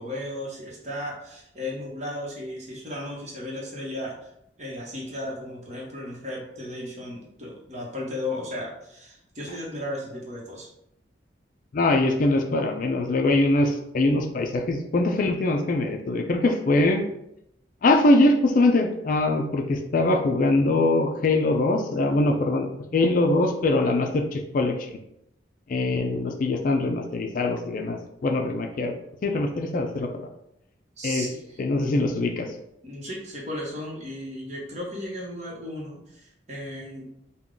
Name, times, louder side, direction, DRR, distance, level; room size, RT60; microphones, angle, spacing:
voice 1, 0.0-4.3 4.6-10.7 31.0-31.6 32.8-37.1, left 1 dB, 40° right, -3 dB, 1.0 m, -35 dB
voice 2, 11.7-17.0 17.8-24.9 25.7-29.0 29.2-30.1 31.0-31.3 31.6-32.5, left 2 dB, 45° left, 4 dB, 0.4 m, -22 dB
3.5 x 2.3 x 3.7 m, 0.79 s
head